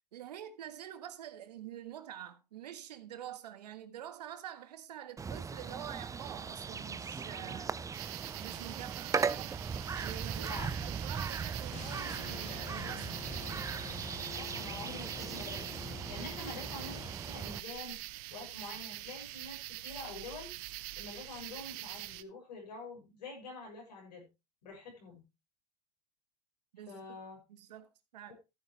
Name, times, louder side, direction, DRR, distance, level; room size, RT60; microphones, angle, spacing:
voice 1, 0.1-7.9 8.4-9.6 9.9-10.5 10.9-13.1 26.7-27.2 27.5-28.3, right 11 dB, 85° right, 1.5 m, -47 dB
sound 1, 5.2-17.6, right 5 dB, 15° right, 0.5 m, -39 dB
sound 2, 7.9-22.2, right 18 dB, 60° right, 0.9 m, -44 dB
voice 2, 10.3-10.9 11.3-11.5 14.4-18.0 18.3-20.5 21.0-24.3 24.6-25.2 26.9-27.4 28.3-28.4, left 3 dB, 85° left, 6.4 m, -46 dB
sound 3, 11.7-17.6, left 13 dB, 35° left, 0.6 m, -48 dB
14.0 x 9.1 x 3.2 m
hypercardioid pair, 95°, 20 cm